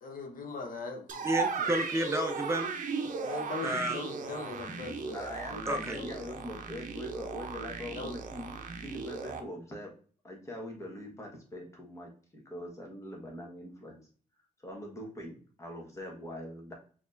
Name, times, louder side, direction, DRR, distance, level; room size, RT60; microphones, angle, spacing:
voice 1, 0.0-1.3 1.6-2.0 3.2-6.3 6.6-6.7 7.9-8.1, left 3 dB, 70° left, 3 dB, 0.9 m, -41 dB
sound 1, 1.1-9.4, right 5 dB, 60° right, 0.6 m, -36 dB
voice 2, 1.2-2.7 3.6-4.0 5.7-6.0, right 1 dB, 15° right, 4 dB, 0.5 m, -31 dB
voice 3, 5.1-9.9 10.2-14.0 14.6-16.7, left 1 dB, 20° left, 0 dB, 1.2 m, -43 dB
4.4 x 2.9 x 2.5 m, 0.42 s
cardioid pair, 115°, 15 cm